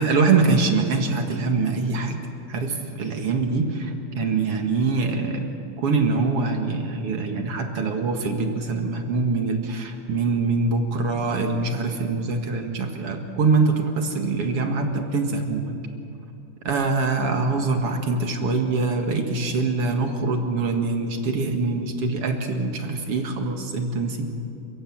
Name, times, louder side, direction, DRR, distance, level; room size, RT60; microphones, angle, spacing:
voice 1, 0.0-2.2 2.5-5.5 5.8-15.7 16.6-24.2, right 3 dB, 50° right, 4 dB, 2.6 m, -24 dB
29.0 x 15.5 x 8.8 m, 2.6 s
omnidirectional pair, 3.6 m